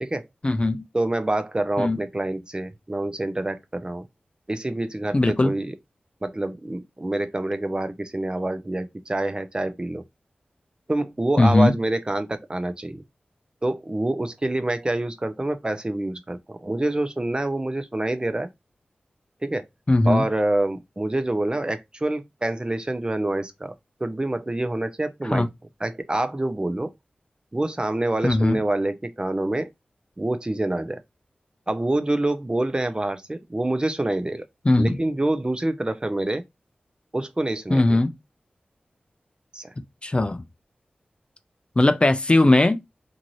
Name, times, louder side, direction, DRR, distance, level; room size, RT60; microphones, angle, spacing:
voice 1, 0.4-0.8 1.8-2.0 5.1-5.5 11.4-11.8 19.9-20.3 25.2-25.5 28.2-28.6 34.6-35.0 37.7-38.1 40.0-40.4 41.8-42.8, left 2 dB, 30° left, 0.4 m, -19 dB
voice 2, 0.9-4.0 4.5-5.7 6.2-10.0 10.9-13.0 13.6-18.5 19.4-19.7 20.1-23.7 24.0-25.5 25.8-26.9 27.5-29.7 30.2-31.0 31.7-34.4 34.8-36.4 37.1-38.0 39.5-39.7, right 1 dB, 25° right, 0.5 m, -26 dB
2.6 x 2.5 x 3.0 m
cardioid pair, 40°, 3 cm